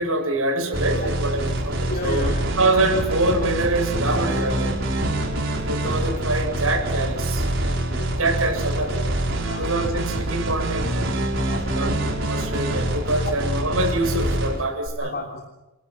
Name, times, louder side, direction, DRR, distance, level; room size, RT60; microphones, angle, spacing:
voice 1, 0.0-4.7 5.6-7.5 8.2-9.1 9.6-10.9 11.8-15.1, right 2 dB, 75° right, 4 dB, 7.5 m, -25 dB
sound 1, 0.7-14.9, right 1 dB, 60° right, 5.3 m, -25 dB
voice 2, 1.9-2.4 2.9-3.0 7.7-8.2 9.4-9.7 11.4-12.0 15.0-15.5, left 1 dB, 45° left, -1 dB, 3.2 m, -33 dB
29.5 x 23.0 x 6.2 m, 1.0 s
head